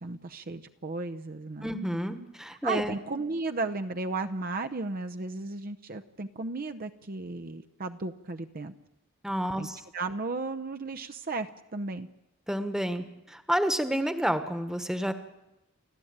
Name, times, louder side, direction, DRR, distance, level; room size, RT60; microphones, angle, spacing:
voice 1, 0.0-1.8 2.6-8.7 9.6-9.7 9.9-12.1, right 3 dB, 45° right, 7 dB, 0.7 m, -34 dB
voice 2, 1.6-3.0 9.2-9.8 12.5-15.1, equal, 5° right, 9 dB, 1.3 m, -30 dB
29.5 x 12.5 x 8.8 m, 0.93 s
head